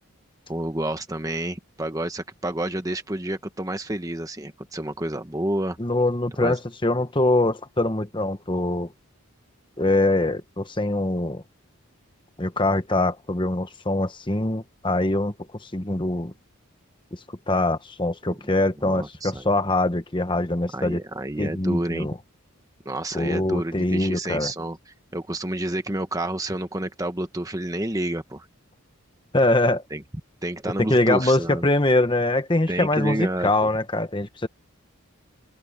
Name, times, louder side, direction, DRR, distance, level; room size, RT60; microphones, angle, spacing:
voice 1, 0.5-5.8 6.4-6.6 18.8-19.5 20.7-22.1 22.8-28.5 29.9-30.0 30.4-31.7 32.7-33.7, right 1 dB, 15° right, 1.2 m, -29 dB
voice 2, 5.8-8.9 9.8-11.4 12.4-15.3 15.6-16.3 17.5-21.0 21.4-22.1 23.1-24.5 29.3-29.8 30.9-34.5, left 2 dB, 20° left, 1.1 m, -23 dB
head